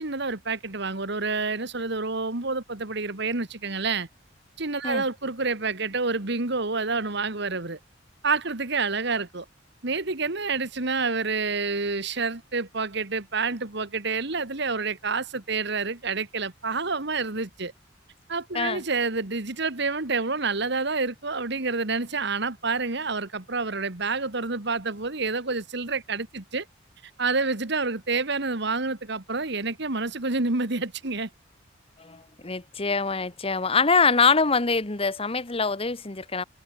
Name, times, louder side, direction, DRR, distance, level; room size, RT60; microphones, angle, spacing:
voice 1, 0.0-4.1 4.6-7.8 8.2-9.5 9.8-17.7 18.3-26.7 27.2-31.3, right 4 dB, 60° right, 2.1 m, -28 dB
voice 2, 32.0-36.4, left 4 dB, 30° left, 1.3 m, -24 dB
head